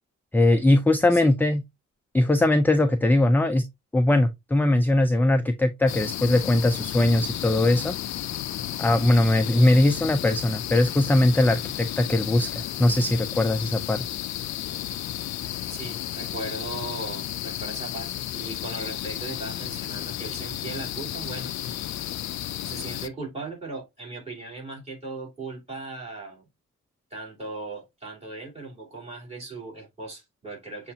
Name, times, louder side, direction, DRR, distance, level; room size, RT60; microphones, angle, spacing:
voice 1, 0.3-1.6 2.1-3.7 3.9-7.9 8.8-14.0, left 1 dB, 5° left, 0.4 m, -21 dB
sound 1, 5.9-23.1, left 12 dB, 65° left, 0.4 m, -33 dB
voice 2, 15.7-21.9 22.6-26.5 27.1-30.9, right 2 dB, 20° right, 2.9 m, -38 dB
6.8 x 2.5 x 2.7 m
cardioid pair, 105°, 31 cm